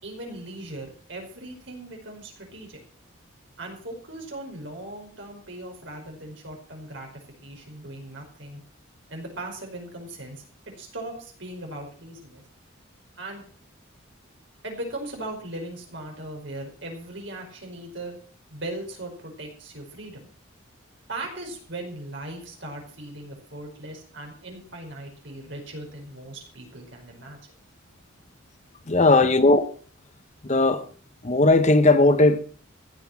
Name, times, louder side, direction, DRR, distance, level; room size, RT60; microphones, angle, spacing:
voice 1, 0.0-2.8 3.6-7.1 7.4-8.6 9.1-10.4 10.8-12.4 13.2-13.4 14.6-18.2 18.5-20.3 21.1-27.4 29.1-29.3, right 1 dB, 60° right, 5.2 m, -38 dB
voice 2, 28.9-29.6 30.4-30.8 31.2-32.4, left 2 dB, 35° left, 0.9 m, -17 dB
15.5 x 7.8 x 7.3 m
head